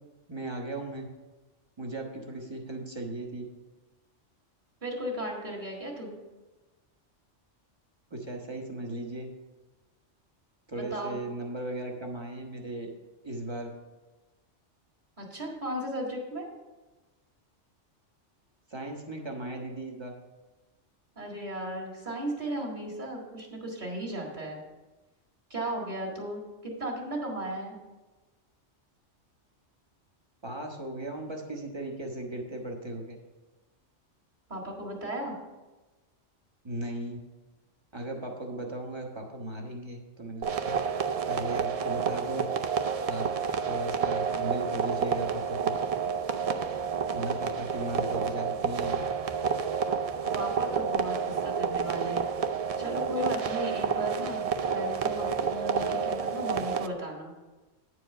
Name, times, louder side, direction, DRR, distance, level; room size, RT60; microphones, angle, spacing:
voice 1, 0.3-1.1 1.8-3.5 8.1-9.3 10.7-12.9 13.2-13.7 18.7-20.1 30.4-33.2 36.6-37.2 37.9-40.8 41.3-42.5 43.1-43.3 43.6-45.7 47.1-49.0, right 1 dB, 25° right, 1 dB, 1.1 m, -37 dB
voice 2, 4.8-6.1 10.7-11.2 15.2-16.5 21.2-24.6 25.5-27.8 34.5-35.3 50.3-52.3 52.5-57.3, right 1 dB, 40° right, -2 dB, 2.0 m, -35 dB
sound 1, 40.4-56.9, right 6 dB, 75° right, 0.3 m, -29 dB
9.4 x 4.8 x 6.5 m, 1.2 s
omnidirectional pair, 1.3 m